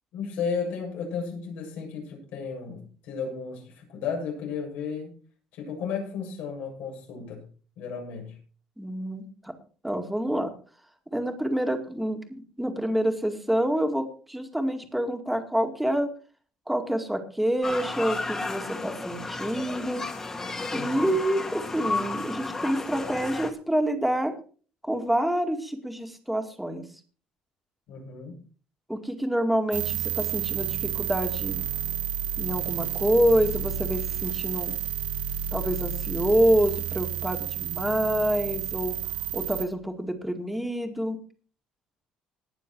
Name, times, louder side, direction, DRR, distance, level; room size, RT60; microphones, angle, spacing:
voice 1, 0.1-5.1 5.5-7.5 7.8-8.4 20.7-21.2 27.9-28.4, left 5 dB, 80° left, 0 dB, 7.5 m, -34 dB
voice 2, 8.8-9.5 9.8-10.5 11.1-16.1 16.7-20.0 20.7-24.3 24.8-26.8 28.9-31.7 32.4-34.7 35.5-39.0 39.3-41.2, right 1 dB, 5° right, 5 dB, 2.2 m, -27 dB
sound 1, 17.6-23.5, left 3 dB, 20° left, 2.0 m, -33 dB
sound 2, 29.7-39.6, right 10 dB, 80° right, 2.0 m, -31 dB
19.5 x 7.0 x 4.7 m, 0.41 s
cardioid pair, 130°, 3 cm